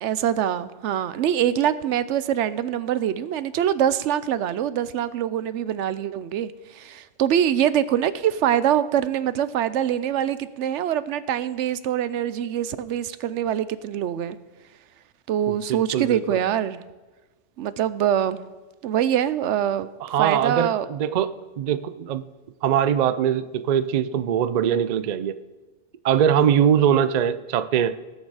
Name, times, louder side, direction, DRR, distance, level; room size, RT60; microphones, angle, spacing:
voice 1, 0.0-14.4 15.3-16.8 17.6-18.4 18.8-19.9 20.2-20.9, right 10 dB, 85° right, 15 dB, 0.9 m, -24 dB
voice 2, 15.5-16.4 20.0-22.2 22.6-25.4 26.0-28.0, right 9 dB, 55° right, 12 dB, 0.5 m, -22 dB
18.0 x 6.6 x 4.8 m, 1.2 s
omnidirectional pair, 1.2 m